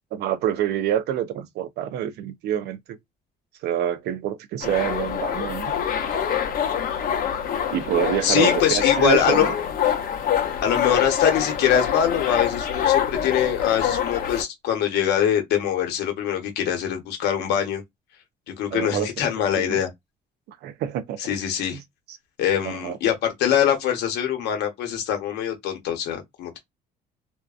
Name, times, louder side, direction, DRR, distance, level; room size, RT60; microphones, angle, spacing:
voice 1, 0.1-3.0 3.6-5.7 7.7-9.5 18.7-19.1 19.5-19.8 20.6-21.3 21.7-21.8 22.6-23.0, right 10 dB, 80° right, 0.5 m, -26 dB
sound 1, 4.6-14.4, left 9 dB, 60° left, 0.7 m, -25 dB
voice 2, 8.2-9.4 10.6-17.8 18.5-19.9 21.2-21.8 22.4-26.6, left 9 dB, 80° left, 0.9 m, -23 dB
2.6 x 2.1 x 2.4 m
cardioid pair, 110°, 17 cm